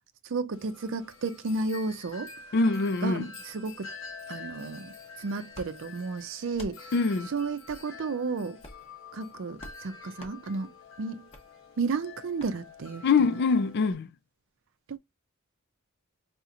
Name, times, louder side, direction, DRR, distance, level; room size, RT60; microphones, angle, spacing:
voice 1, 0.2-2.3 3.0-3.9 4.3-4.9 5.2-6.9 7.3-8.6 9.1-10.7 11.0-11.3 11.8-13.4 14.9-15.0, right 4 dB, 60° right, 0.5 m, -33 dB
Wind chime, 0.5-13.9, left 4 dB, 65° left, 1.4 m, -47 dB
voice 2, 2.5-3.3 6.9-7.3 13.0-14.1, left 4 dB, 50° left, 0.4 m, -24 dB
sound 1, 5.5-5.7 6.5-6.8 7.7-7.8 8.6-8.9 9.6-9.8 10.2-10.4 11.3-11.4 12.4-12.5, left 1 dB, 25° left, 0.9 m, -45 dB
4.1 x 2.9 x 2.4 m
head